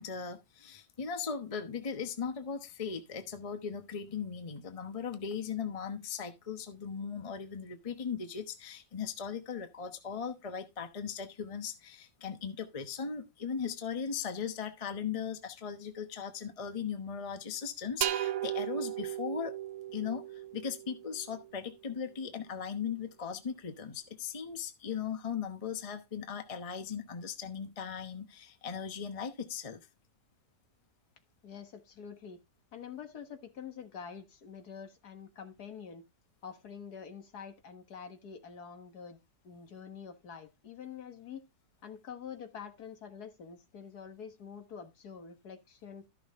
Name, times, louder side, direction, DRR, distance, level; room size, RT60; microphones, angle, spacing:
voice 1, 0.0-19.5 19.9-29.8, left 6 dB, 25° left, 1.0 m, -38 dB
sound 1, 18.0-21.6, right 12 dB, 60° right, 0.9 m, -36 dB
voice 2, 31.4-32.4 32.7-36.0 36.4-39.2 39.4-41.5 41.8-46.1, left 7 dB, 65° left, 2.0 m, -46 dB
13.5 x 6.1 x 3.6 m
omnidirectional pair, 1.8 m